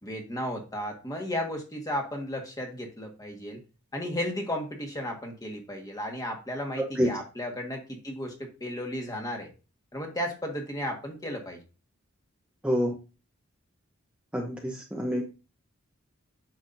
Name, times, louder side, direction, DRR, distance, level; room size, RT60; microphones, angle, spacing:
voice 1, 0.0-3.6 3.9-9.5 9.9-11.6, left 1 dB, 15° left, 2 dB, 1.5 m, -34 dB
voice 2, 6.8-7.2 12.6-12.9 14.3-15.3, equal, 5° right, 0 dB, 0.8 m, -27 dB
9.3 x 6.3 x 2.6 m, 0.32 s
head